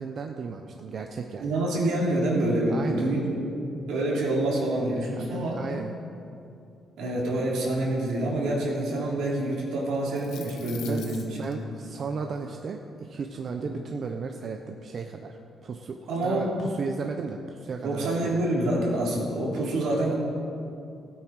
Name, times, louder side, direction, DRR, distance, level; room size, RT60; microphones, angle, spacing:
voice 1, 0.0-1.6 2.7-3.1 5.3-5.9 10.9-18.4, right 5 dB, 50° right, 4 dB, 0.7 m, -35 dB
voice 2, 1.4-3.3 3.9-5.6 7.0-11.1 11.5-11.6 13.6-13.7 16.1-16.5 17.8-20.2, right 1 dB, 85° right, -4 dB, 3.2 m, -27 dB
sound 1, 9.9-11.5, left 9 dB, 85° left, 1.0 m, -44 dB
16.0 x 8.8 x 4.8 m, 2.6 s
cardioid pair, 90°, 0 cm